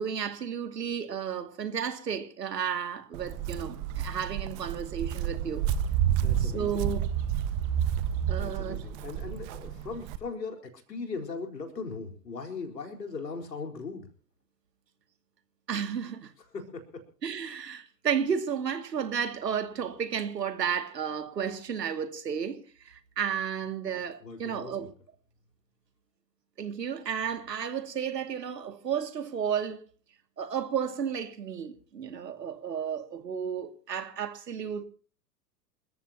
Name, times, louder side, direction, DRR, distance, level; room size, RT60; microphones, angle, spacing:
voice 1, 0.0-5.7 6.4-7.0 8.3-8.8 15.7-16.3 17.2-24.9 26.6-29.8 30.4-34.8, right 7 dB, 75° right, 2.5 m, -32 dB
Walk footsteps, 3.1-10.2, right 9 dB, 35° right, 1.5 m, -30 dB
voice 2, 6.1-6.9 8.3-14.1 16.5-17.0 24.2-24.9, left 4 dB, 80° left, 4.5 m, -39 dB
28.0 x 14.5 x 2.9 m
figure-of-eight pair, 100°, 49 cm